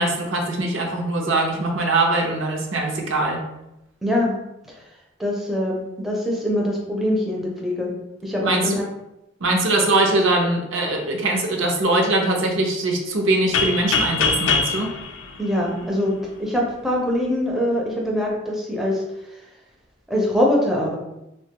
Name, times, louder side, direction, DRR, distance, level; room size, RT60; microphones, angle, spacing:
voice 1, 0.0-3.4 8.4-8.7 9.4-14.9, right 2 dB, 80° right, 1 dB, 0.6 m, -22 dB
voice 2, 4.0-4.3 4.7-4.8 5.2-7.9 8.2-8.8 15.4-19.0 20.1-21.0, left 1 dB, ahead, -3 dB, 0.4 m, -23 dB
sound 1, 13.5-16.3, left 5 dB, 70° left, 0.4 m, -23 dB
3.3 x 2.2 x 2.8 m, 0.91 s
head